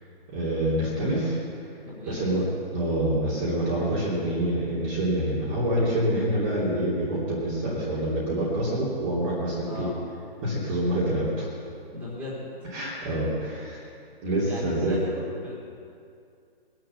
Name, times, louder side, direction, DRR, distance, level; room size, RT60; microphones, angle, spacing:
voice 1, 0.3-1.4 2.1-2.4 2.7-9.9 10.4-11.5 12.7-13.8 14.2-15.0, right 1 dB, 25° right, -9 dB, 3.1 m, -26 dB
voice 2, 1.8-2.2 9.6-9.9 11.9-12.5 14.4-15.5, left 1 dB, 5° right, -9 dB, 4.1 m, -36 dB
22.0 x 7.7 x 6.9 m, 2.4 s
hypercardioid pair, 145°, 31 cm